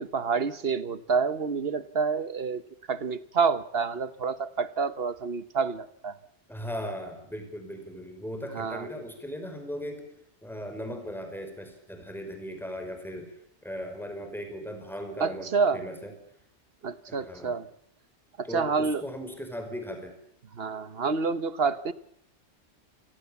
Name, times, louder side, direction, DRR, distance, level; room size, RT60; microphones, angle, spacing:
voice 1, 0.0-2.6 2.9-6.2 8.5-8.9 15.2-15.8 16.8-17.7 18.4-19.0 20.5-21.9, right 5 dB, 60° right, 15 dB, 1.3 m, -28 dB
voice 2, 6.5-10.1 10.4-16.1 17.1-17.6 18.4-20.2, equal, ahead, 5 dB, 5.4 m, -38 dB
28.5 x 18.0 x 7.1 m, 0.67 s
omnidirectional pair, 1.2 m